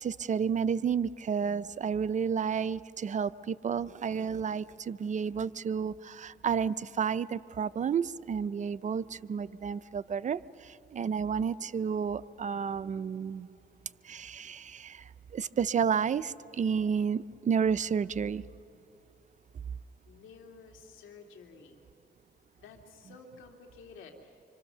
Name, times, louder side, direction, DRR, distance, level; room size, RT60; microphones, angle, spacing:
voice 1, 0.0-13.5 14.0-18.4, right 7 dB, 40° right, 17 dB, 0.5 m, -31 dB
voice 2, 20.1-21.9 22.6-24.4, left 4 dB, 85° left, 3 dB, 2.4 m, -52 dB
26.0 x 25.0 x 6.7 m, 2.9 s
cardioid pair, 90°, 20 cm